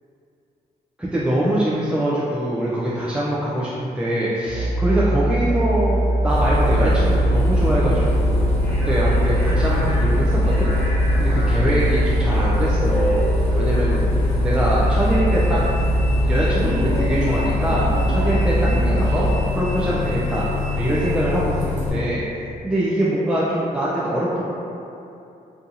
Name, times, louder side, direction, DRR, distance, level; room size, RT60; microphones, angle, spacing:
voice 1, 1.0-8.6 8.9-10.7 11.2-13.2 13.5-14.0 14.4-15.6 16.2-19.3 19.5-20.5 20.8-22.2 22.6-24.4, right 1 dB, 5° right, -8 dB, 0.4 m, -23 dB
Musical instrument, 4.4-19.4, right 1 dB, 55° left, 0.7 m, -21 dB
Bus, 6.3-21.9, left 3 dB, 10° left, 1.0 m, -25 dB
2.7 x 2.3 x 2.6 m, 2.7 s
supercardioid pair, 60°, 18 cm